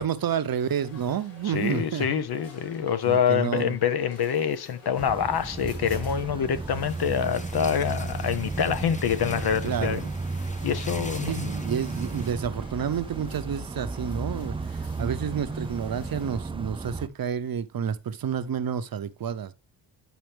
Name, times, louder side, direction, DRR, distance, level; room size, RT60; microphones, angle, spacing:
voice 1, 0.0-2.1 3.0-3.8 9.6-10.2 11.2-19.5, right 8 dB, 45° right, 0.8 m, -30 dB
sound 1, 0.6-16.4, left 3 dB, 75° left, 3.3 m, -52 dB
voice 2, 1.5-10.0 10.6-11.5, left 8 dB, 55° left, 0.8 m, -26 dB
sound 2, 5.0-17.1, right 3 dB, 10° right, 0.4 m, -34 dB
sound 3, 6.9-12.3, left 2 dB, 15° left, 1.0 m, -44 dB
9.2 x 4.3 x 3.4 m
cardioid pair, 80°, 47 cm